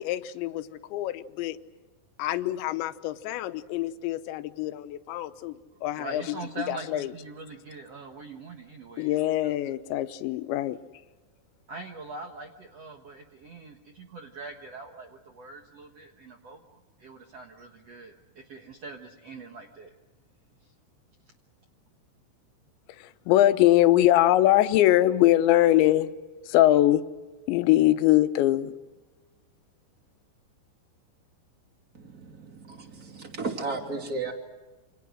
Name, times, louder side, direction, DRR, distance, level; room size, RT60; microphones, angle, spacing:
voice 1, 0.0-1.6 2.2-6.4 6.7-7.1 9.0-10.8 23.0-26.1 26.5-27.0 27.5-28.7, left 14 dB, 80° left, 10 dB, 3.2 m, -23 dB
voice 2, 6.0-9.2 9.4-9.5 11.7-19.9, right 3 dB, 80° right, 3 dB, 1.4 m, -43 dB
voice 3, 31.9-34.3, right 3 dB, 25° right, 3 dB, 2.5 m, -34 dB
28.5 x 27.0 x 6.3 m, 1.2 s
omnidirectional pair, 5.4 m